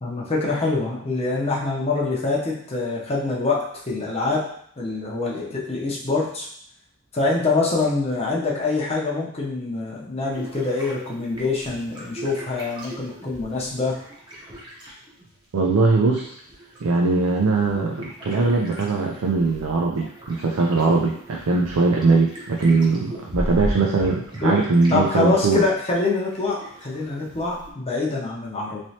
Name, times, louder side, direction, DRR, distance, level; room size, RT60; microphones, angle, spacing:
voice 1, 0.0-4.5 4.8-6.5 7.1-14.0 24.4-24.6 24.9-28.8, left 3 dB, 30° left, -3 dB, 0.7 m, -25 dB
sound 1, 10.3-15.3 15.6-25.0 25.3-27.7, equal, 20° right, 0.8 m, -37 dB
voice 2, 15.5-16.4 16.8-25.6, right 3 dB, 70° right, 0 dB, 0.4 m, -21 dB
3.2 x 2.9 x 2.8 m, 0.65 s
head